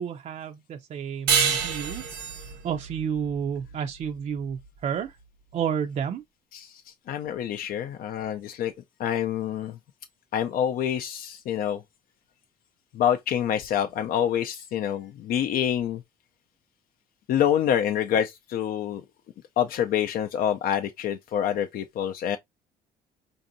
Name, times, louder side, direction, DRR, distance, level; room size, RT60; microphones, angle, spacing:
voice 1, 0.0-5.2 5.5-6.2, right 8 dB, 45° right, 0.4 m, -31 dB
sound 1, 1.3-4.4, right 7 dB, 85° right, 1.0 m, -28 dB
voice 2, 7.1-8.7 9.0-9.8 10.3-11.8 12.9-16.0 17.3-19.0 19.6-22.4, left 9 dB, 60° left, 0.4 m, -26 dB
5.1 x 2.6 x 2.5 m
cardioid pair, 110°, 17 cm